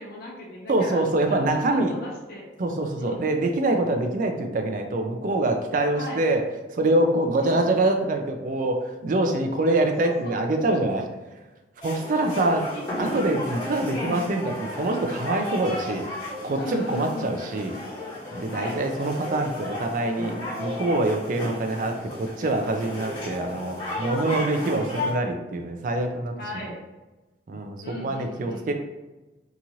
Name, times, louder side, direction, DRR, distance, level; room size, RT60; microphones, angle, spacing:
voice 1, 0.0-2.5 3.0-3.3 5.9-6.2 7.4-7.8 10.0-10.4 12.1-12.8 16.6-17.3 18.5-18.8 24.3-24.6 26.4-26.8 27.8-28.7, left 1 dB, 55° left, -3 dB, 0.7 m, -37 dB
voice 2, 0.7-1.9 2.6-6.4 6.7-11.1 11.8-12.6 13.0-16.1 16.4-17.8 18.3-20.3 20.6-26.3 27.5-28.7, right 2 dB, 45° right, 4 dB, 0.4 m, -25 dB
sound 1, 11.8-25.1, left 1 dB, 25° left, 1.4 m, -34 dB
2.9 x 2.4 x 2.7 m, 1.1 s
head